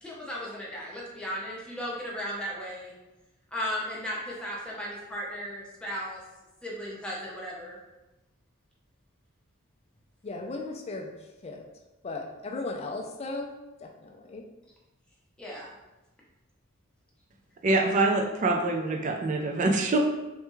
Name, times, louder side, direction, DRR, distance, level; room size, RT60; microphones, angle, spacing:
voice 1, 0.0-2.9 3.5-6.2 6.6-7.8 15.4-15.7, equal, 5° left, -6 dB, 0.7 m, -36 dB
voice 2, 10.2-11.1 11.4-11.6 12.0-13.5 13.8-14.4, left 2 dB, 30° left, 2 dB, 0.4 m, -36 dB
voice 3, 17.6-20.0, right 2 dB, 35° right, 2 dB, 0.4 m, -25 dB
3.5 x 2.2 x 3.0 m, 1.0 s
head